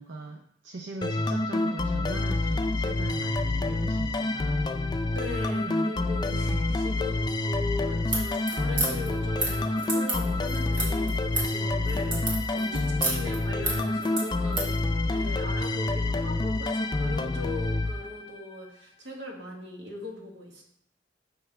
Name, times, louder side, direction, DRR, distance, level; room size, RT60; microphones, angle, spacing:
voice 1, 0.0-4.7 5.7-5.8 6.3-6.8 12.7-12.9, right 2 dB, 90° right, 3 dB, 0.5 m, -39 dB
sound 1, 1.0-18.5, left 2 dB, 25° left, 0.3 m, -28 dB
voice 2, 5.1-14.8 15.1-20.6, left 1 dB, 75° right, 0 dB, 1.4 m, -39 dB
sound 2, 8.0-14.7, right 2 dB, 50° right, 1.6 m, -32 dB
5.7 x 5.6 x 3.3 m, 0.70 s
head